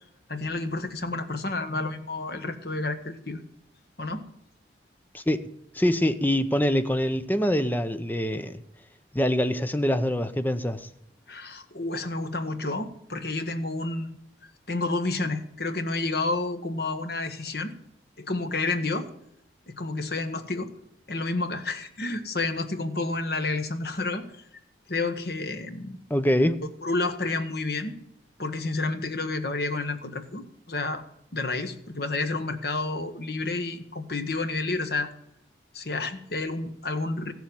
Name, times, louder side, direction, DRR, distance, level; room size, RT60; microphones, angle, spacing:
voice 1, 0.3-3.4 4.0-4.2 11.3-14.1 14.7-17.7 18.2-19.1 19.7-20.7 21.1-24.4 24.9-26.0 26.8-28.0 28.4-31.0 31.3-35.1 35.7-37.3, left 3 dB, 55° left, 8 dB, 1.4 m, -30 dB
voice 2, 5.7-8.6 9.1-10.9 26.1-26.6, equal, 10° left, 10 dB, 0.7 m, -24 dB
15.0 x 7.3 x 9.3 m, 0.77 s
head